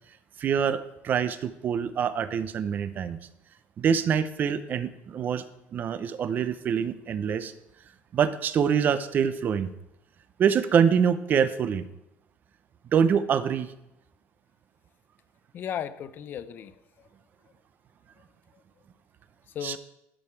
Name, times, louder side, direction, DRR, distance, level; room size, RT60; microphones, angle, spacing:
voice 1, 0.4-3.2 3.8-5.4 5.7-7.5 8.1-9.7 10.4-11.9 12.9-13.7 19.6-19.8, right 7 dB, 35° right, 13 dB, 0.6 m, -25 dB
voice 2, 15.5-17.1 18.5-18.6 19.5-19.8, left 9 dB, 40° left, 14 dB, 0.6 m, -36 dB
11.5 x 6.7 x 4.5 m, 0.87 s
cardioid pair, 150°, 5 cm